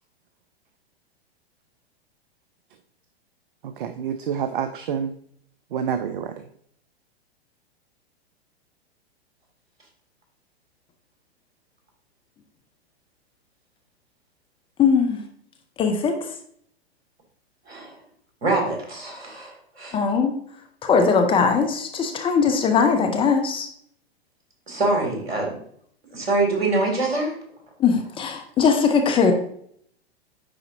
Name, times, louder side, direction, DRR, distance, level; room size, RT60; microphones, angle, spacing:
voice 1, 3.6-5.1 5.7-6.4, right 7 dB, 50° right, 9 dB, 0.5 m, -28 dB
voice 2, 14.8-15.2 15.8-16.1 19.9-20.3 20.8-23.7 27.8-29.3, left 5 dB, 15° left, 4 dB, 0.6 m, -20 dB
voice 3, 18.4-20.0 24.7-25.6 26.1-27.3, right 2 dB, 70° right, 1 dB, 2.5 m, -24 dB
9.8 x 4.0 x 2.7 m, 0.64 s
figure-of-eight pair, 100°, 32 cm